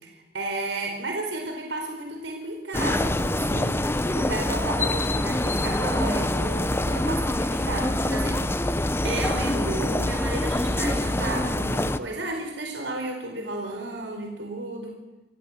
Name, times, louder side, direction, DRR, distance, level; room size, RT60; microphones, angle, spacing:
voice 1, 0.1-8.7 9.0-15.0, right 2 dB, 90° right, 2 dB, 4.6 m, -33 dB
sound 1, 2.7-12.0, left 1 dB, 15° left, 0.9 m, -25 dB
27.5 x 16.0 x 8.1 m, 1.1 s
head